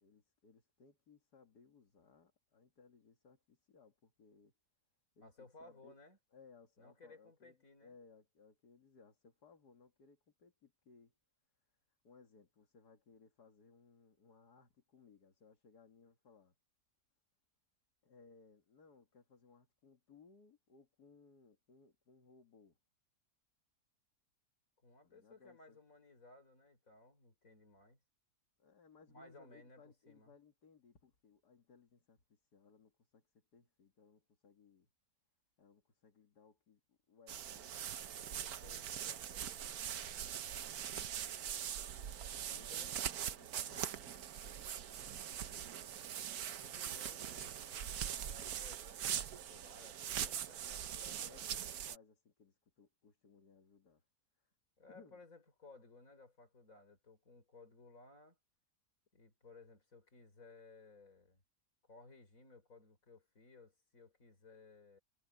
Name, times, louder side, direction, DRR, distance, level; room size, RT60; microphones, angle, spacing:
voice 1, 0.0-4.5 5.2-6.0 6.3-11.1 11.9-16.5 18.0-22.8 25.0-25.8 28.6-34.9 35.6-38.2 40.9-41.8 42.4-43.0 43.3-46.0 50.9-51.5 51.9-54.0 54.4-54.5 54.9-55.2, left 5 dB, 75° left, 2.5 m, -64 dB
voice 2, 5.2-6.2 6.8-7.9 24.8-28.0 29.1-30.3 38.1-39.6 42.4-42.9 46.6-51.5 54.8-58.4 59.1-61.4 61.8-65.0, left 3 dB, 55° left, 4.9 m, -60 dB
sound 1, 37.3-52.0, right 9 dB, 70° right, 1.4 m, -42 dB
omnidirectional pair, 1.7 m